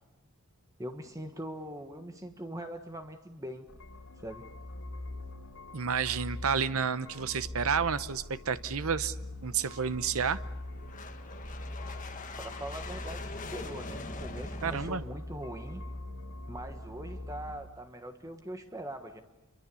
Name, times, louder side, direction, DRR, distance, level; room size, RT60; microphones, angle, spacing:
voice 1, 0.8-3.7 4.2-4.5 12.4-15.8 16.5-19.2, right 1 dB, 15° right, 6 dB, 1.3 m, -42 dB
sound 1, 3.7-17.6, left 1 dB, 85° left, 3.5 m, -42 dB
voice 2, 5.7-9.2 9.4-10.4 14.6-15.0, right 6 dB, 75° right, 14 dB, 0.8 m, -30 dB
sound 2, 8.6-14.9, left 3 dB, 35° left, 1.8 m, -44 dB
27.5 x 23.5 x 7.0 m, 1.0 s
head